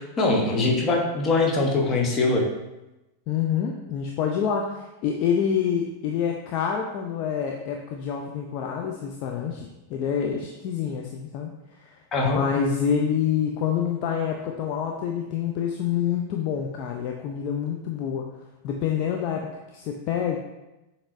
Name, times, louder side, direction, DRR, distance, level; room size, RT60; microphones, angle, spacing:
voice 1, 0.2-2.5 12.1-12.4, left 3 dB, 25° left, 0 dB, 0.9 m, -22 dB
voice 2, 3.3-11.5 11.8-18.3 18.6-20.4, left 7 dB, 40° left, 2 dB, 0.4 m, -27 dB
7.0 x 3.0 x 2.5 m, 0.99 s
figure-of-eight pair, 90°, 0 cm